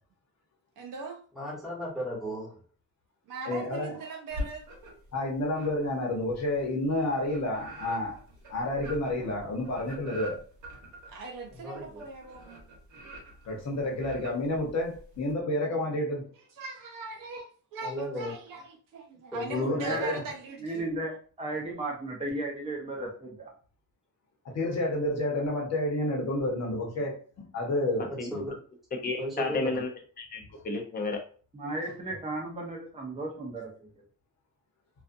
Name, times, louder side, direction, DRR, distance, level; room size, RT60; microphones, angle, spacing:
voice 1, 0.8-1.2 3.3-4.7 11.1-12.5 16.5-20.9, right 3 dB, 80° right, 0.6 m, -40 dB
voice 2, 1.3-2.6 11.5-12.0 17.8-18.3 19.3-20.0 28.3-28.6 29.2-29.8, equal, ahead, 1.1 m, -35 dB
voice 3, 3.4-4.0 5.1-8.2 8.5-10.4 13.5-16.3 19.5-20.2 24.4-28.5, left 1 dB, 55° left, 0.9 m, -30 dB
sound 1, 4.3-5.1 5.5-15.3, left 1 dB, 60° right, 1.0 m, -44 dB
voice 4, 19.7-20.2 20.6-23.5 31.5-33.7, right 2 dB, 20° right, 0.6 m, -34 dB
voice 5, 29.0-29.9 30.2-31.2, left 3 dB, 30° left, 0.5 m, -32 dB
2.5 x 2.3 x 2.5 m
wide cardioid pair, 170°, 32 cm